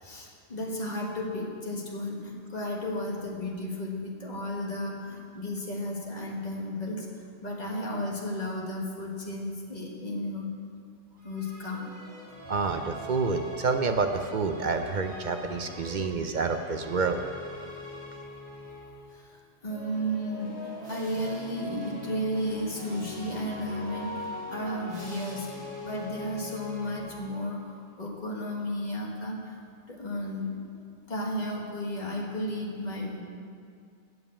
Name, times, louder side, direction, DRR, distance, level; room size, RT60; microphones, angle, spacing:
voice 1, 0.0-7.1 7.4-10.5 11.2-11.8 19.1-25.5 25.8-29.6 29.9-30.8 31.1-33.2, left 1 dB, 35° left, -2 dB, 1.6 m, -33 dB
sound 1, 11.2-19.0 19.6-27.6, left 1 dB, 35° right, 3.1 m, -42 dB
voice 2, 12.5-17.2, right 4 dB, 50° right, 6 dB, 0.6 m, -28 dB
7.9 x 7.0 x 8.4 m, 2.4 s
omnidirectional pair, 1.2 m